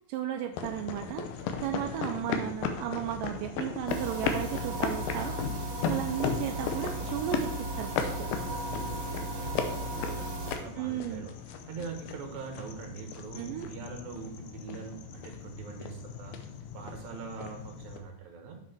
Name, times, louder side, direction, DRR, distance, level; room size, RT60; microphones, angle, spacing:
voice 1, 0.1-1.3 1.6-5.4 5.8-8.3 10.8-11.3 13.4-13.7, right 11 dB, 80° right, 5 dB, 2.0 m, -34 dB
sound 1, 0.5-18.0, left 6 dB, 85° left, 2.6 m, -36 dB
sound 2, 3.9-10.6, right 1 dB, 40° right, 3.1 m, -36 dB
voice 2, 8.6-11.3 11.7-18.6, right 5 dB, 60° right, 3 dB, 2.6 m, -43 dB
7.8 x 5.9 x 4.4 m, 0.87 s
omnidirectional pair, 4.2 m